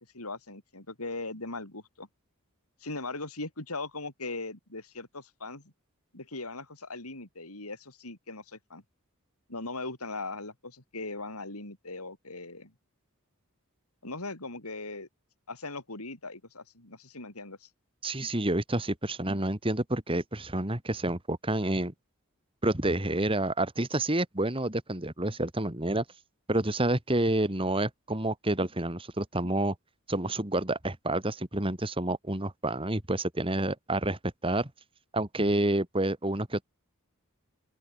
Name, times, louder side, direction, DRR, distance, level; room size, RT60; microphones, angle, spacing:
voice 1, 0.0-2.1 2.8-5.7 6.1-8.8 9.5-12.7 14.0-15.1 15.5-17.7, left 3 dB, 90° left, 6.4 m, -39 dB
voice 2, 18.0-21.9 22.6-26.0 26.5-29.7 30.1-34.7 35.1-36.6, right 1 dB, 25° right, 2.4 m, -29 dB
open air
head